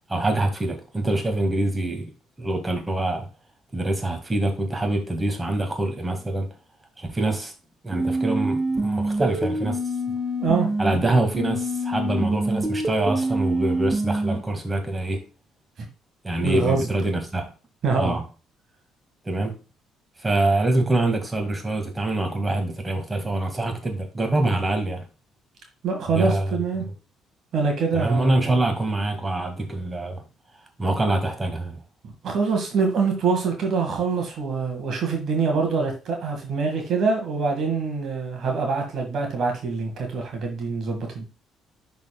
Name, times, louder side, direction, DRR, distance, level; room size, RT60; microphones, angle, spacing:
voice 1, 0.1-2.1 2.4-3.3 3.7-6.5 7.0-7.5 7.8-9.8 10.8-15.2 16.2-17.5 18.0-18.2 19.2-19.6 20.2-25.0 26.1-26.6 27.9-30.2 30.8-31.8, right 2 dB, 20° right, 1.9 m, -25 dB
sound 1, 7.9-10.9 11.3-14.4, right 1 dB, 35° right, 1.5 m, -25 dB
voice 2, 16.4-16.9 17.8-18.2 25.8-26.8 27.5-28.6 32.0-41.3, right 4 dB, 55° right, 1.8 m, -25 dB
11.0 x 4.2 x 2.3 m
hypercardioid pair, 50°, 0 cm